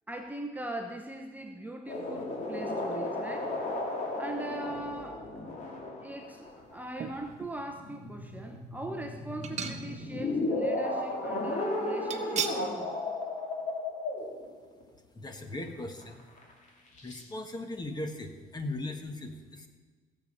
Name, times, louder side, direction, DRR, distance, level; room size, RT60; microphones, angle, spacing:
voice 1, 0.1-3.6 4.2-5.3 6.0-12.9, right 1 dB, 10° right, 3 dB, 0.8 m, -41 dB
sound 1, 1.9-14.8 15.5-15.6 16.0-16.5 17.0-17.2, left 2 dB, 45° left, 2.7 m, -34 dB
sound 2, 7.0-7.6 8.1-8.2 9.4-10.2 10.5-10.6 12.1-12.7 13.1-13.3 13.6-13.7, right 7 dB, 40° right, 1.1 m, -36 dB
voice 2, 15.1-16.2 17.0-19.7, left 2 dB, 25° left, 6 dB, 1.4 m, -38 dB
17.0 x 7.2 x 5.5 m, 1.4 s
cardioid pair, 110°, 17 cm